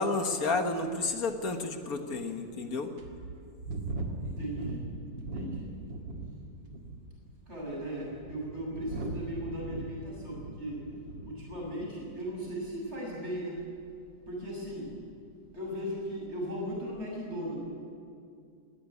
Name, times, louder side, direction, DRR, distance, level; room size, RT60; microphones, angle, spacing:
voice 1, 0.0-2.9, left 3 dB, 50° left, 6 dB, 1.8 m, -31 dB
sound 1, 0.8-0.9 1.5-1.6 2.3-2.4 3.0-6.3 6.6-7.1 7.8-11.3 11.6-11.9, right 2 dB, 65° right, 2.6 m, -39 dB
voice 2, 4.2-5.8 7.5-10.8 11.2-13.7 14.3-15.0 15.5-17.6, equal, 30° right, -3 dB, 7.6 m, -37 dB
19.0 x 18.5 x 9.8 m, 2.4 s
omnidirectional pair, 2.2 m